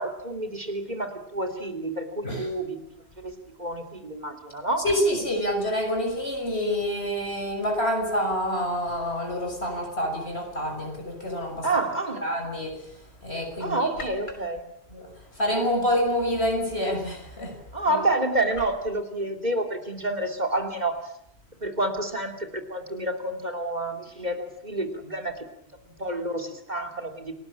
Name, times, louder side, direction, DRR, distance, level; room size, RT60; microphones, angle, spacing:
voice 1, 0.0-3.3 3.6-4.9 11.6-12.2 13.6-14.7 17.7-21.0 21.6-25.5 25.9-27.3, right 2 dB, 40° right, 5 dB, 3.0 m, -29 dB
voice 2, 4.8-11.7 12.2-12.8 13.2-14.1 14.9-15.1 15.4-17.6 17.9-18.0, equal, 70° left, 5 dB, 6.5 m, -27 dB
29.0 x 20.0 x 8.6 m, 0.72 s
omnidirectional pair, 1.1 m